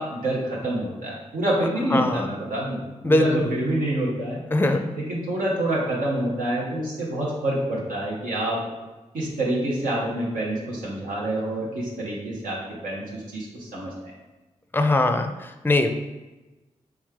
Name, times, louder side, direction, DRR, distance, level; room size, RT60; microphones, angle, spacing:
voice 1, 0.0-4.4 5.0-8.6 9.1-12.6 12.8-14.1, right 1 dB, 85° right, -5 dB, 0.9 m, -27 dB
voice 2, 1.9-2.3 3.0-3.5 4.5-4.8 14.7-15.9, left 2 dB, 15° left, 7 dB, 0.4 m, -21 dB
3.4 x 3.2 x 3.5 m, 1.1 s
cardioid pair, 45°, 13 cm